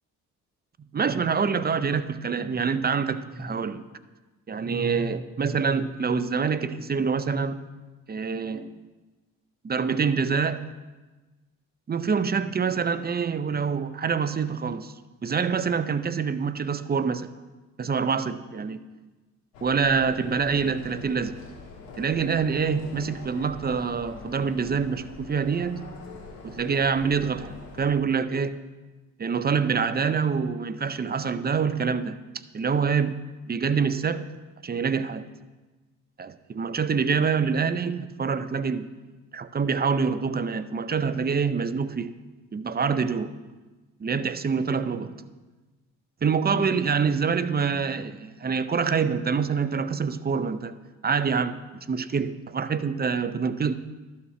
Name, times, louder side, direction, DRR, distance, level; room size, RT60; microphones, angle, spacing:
voice 1, 0.9-3.9 4.5-7.6 8.1-8.7 9.6-10.7 11.9-14.9 15.2-17.3 17.8-18.8 19.6-21.4 22.0-25.9 26.4-28.6 29.2-32.2 32.5-33.2 33.5-34.3 34.6-35.2 36.2-38.9 39.3-42.1 42.5-43.4 44.0-45.2 46.2-50.8 51.0-51.6 51.9-53.7, right 5 dB, 25° right, 14 dB, 0.5 m, -26 dB
sound 1, 19.5-27.9, left 3 dB, 80° left, 1.6 m, -44 dB
12.0 x 4.3 x 6.0 m, 1.2 s
hypercardioid pair, 50°, 41 cm